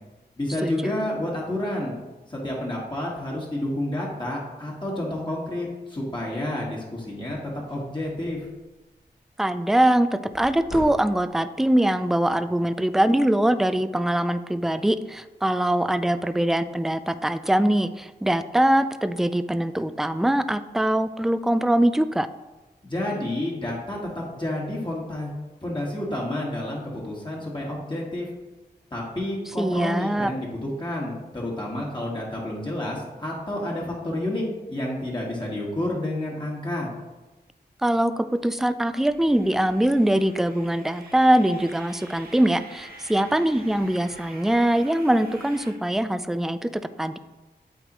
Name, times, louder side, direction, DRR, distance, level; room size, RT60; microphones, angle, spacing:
voice 1, 0.4-2.0 2.3-7.4 7.7-8.4 22.8-25.3 25.6-28.3 28.9-36.9, left 1 dB, 25° left, -4 dB, 1.7 m, -30 dB
sound 1, 7.1-7.3 7.5-8.6 10.3-11.5, left 1 dB, 90° left, 1.8 m, -41 dB
voice 2, 9.4-22.3 29.6-30.3 37.8-47.2, right 1 dB, ahead, 13 dB, 0.3 m, -22 dB
sound 2, 39.0-45.7, right 2 dB, 60° right, 1.2 m, -47 dB
8.0 x 4.1 x 3.0 m, 1.1 s
cardioid pair, 45°, 17 cm